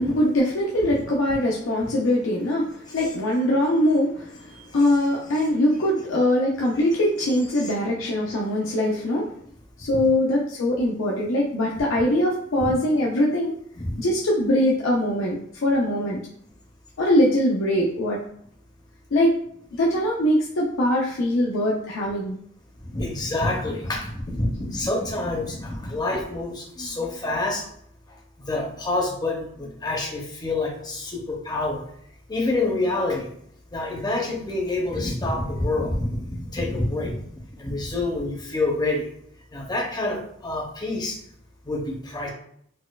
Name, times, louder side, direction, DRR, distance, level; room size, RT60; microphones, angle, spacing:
voice 1, 0.0-9.3 9.8-13.5 14.0-16.2 17.0-18.2 19.1-19.3 19.8-22.3, left 1 dB, 85° left, -3 dB, 0.5 m, -22 dB
voice 2, 22.8-27.6 28.4-31.8 32.3-33.3 33.7-37.2 37.6-39.1 39.5-41.2 41.6-42.3, left 2 dB, 20° left, -1 dB, 0.6 m, -27 dB
4.2 x 2.2 x 2.2 m, 0.67 s
head